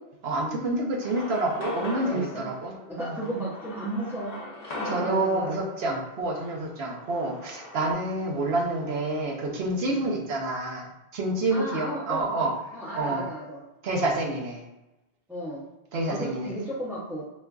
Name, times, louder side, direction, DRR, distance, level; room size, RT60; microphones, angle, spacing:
voice 1, 0.2-3.3 4.9-12.5 12.9-13.2 13.8-14.6 15.9-16.5, right 2 dB, 65° right, 0 dB, 0.9 m, -28 dB
sound 1, 1.0-7.9, left 1 dB, 45° left, 0.7 m, -39 dB
voice 2, 2.0-2.5 2.9-4.4 4.7-5.5 9.9-10.2 11.5-12.5 12.7-13.6 15.3-15.6 16.1-17.2, right 1 dB, 5° right, -9 dB, 0.5 m, -34 dB
4.4 x 2.4 x 2.3 m, 0.98 s
omnidirectional pair, 1.2 m